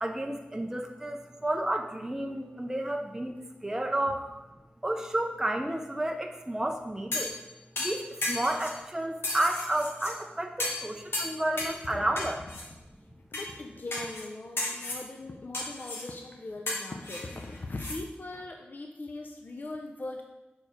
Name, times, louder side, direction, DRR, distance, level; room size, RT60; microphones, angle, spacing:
voice 1, 0.0-4.4 4.8-7.3 7.8-12.4, right 1 dB, 10° right, 3 dB, 0.5 m, -31 dB
sound 1, 7.1-7.4 7.8-8.8 9.2-10.1 10.6-10.9 11.1-11.8 12.2-12.6 13.3-13.5 13.9-14.3 14.6-15.0 15.5-16.1 16.7-18.0 18.3-18.4, left 2 dB, 70° left, 1.3 m, -34 dB
voice 2, 11.9-12.3 13.3-20.2, left 2 dB, 45° left, 2 dB, 0.6 m, -40 dB
6.3 x 4.4 x 4.9 m, 1.1 s
wide cardioid pair, 90°, 4 cm